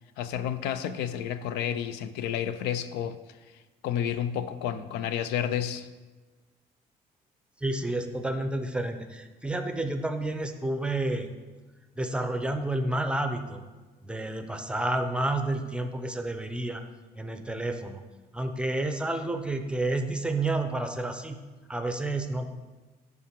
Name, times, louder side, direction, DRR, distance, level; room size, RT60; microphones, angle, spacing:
voice 1, 0.2-3.2 3.8-5.9, left 9 dB, 85° left, 12 dB, 0.4 m, -30 dB
voice 2, 7.6-11.3 12.0-13.6 14.0-16.8 17.2-18.0 18.3-21.4 21.7-22.4, right 2 dB, 5° right, 6 dB, 0.6 m, -30 dB
10.5 x 3.7 x 4.5 m, 1.3 s
cardioid pair, 110°, 17 cm